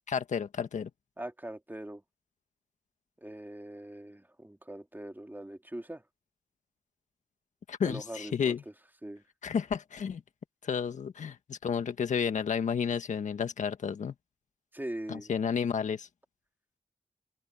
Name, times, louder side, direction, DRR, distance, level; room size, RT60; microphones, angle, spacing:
voice 1, 0.1-0.9 7.7-8.6 9.4-10.2 10.6-14.1 15.1-16.1, left 6 dB, 85° left, 1.6 m, -31 dB
voice 2, 1.2-2.0 3.2-6.0 7.8-8.6 9.0-9.2 14.7-15.3, right 1 dB, 15° right, 3.0 m, -41 dB
open air
cardioid pair, 45°, 12 cm